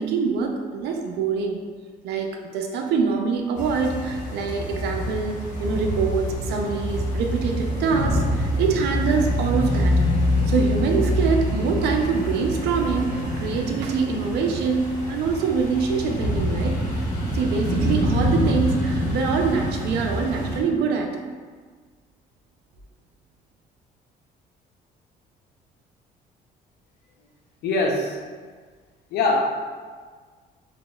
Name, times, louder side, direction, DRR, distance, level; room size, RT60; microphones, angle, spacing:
voice 1, 0.0-1.6 2.0-9.9 10.5-17.0 17.3-21.1, right 5 dB, 80° right, 3 dB, 0.6 m, -24 dB
sound 1, 3.6-20.6, equal, 45° left, 1.1 m, -25 dB
voice 2, 27.6-28.2 29.1-29.4, left 3 dB, 70° left, 1 dB, 0.7 m, -22 dB
5.1 x 3.0 x 2.3 m, 1.6 s
cardioid pair, 110°, 17 cm